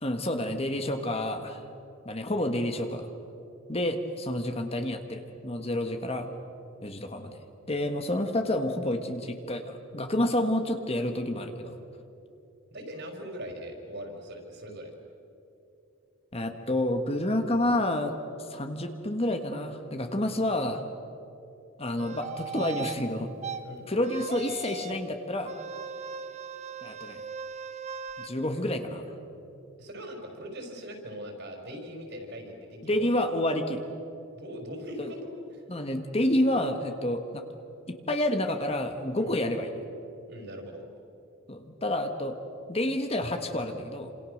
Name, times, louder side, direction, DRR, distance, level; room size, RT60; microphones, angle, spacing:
voice 1, 0.0-1.6 2.0-3.1 3.7-6.3 6.8-11.7 16.3-18.2 18.5-20.8 21.8-23.3 23.9-25.5 26.8-27.2 28.2-29.1 32.8-33.8 35.0-35.1 35.7-37.4 37.9-39.7 41.5-42.3 42.7-44.1, left 1 dB, 30° left, 6 dB, 1.5 m, -29 dB
voice 2, 12.7-14.9 23.6-23.9 29.8-33.1 34.3-35.6 39.2-39.3 40.3-40.9, equal, 55° right, 3 dB, 5.2 m, -41 dB
sound 1, 22.0-23.0 23.4-23.6 24.0-25.0 25.4-28.3, right 5 dB, 35° right, 1.1 m, -38 dB
28.5 x 27.0 x 6.6 m, 2.8 s
head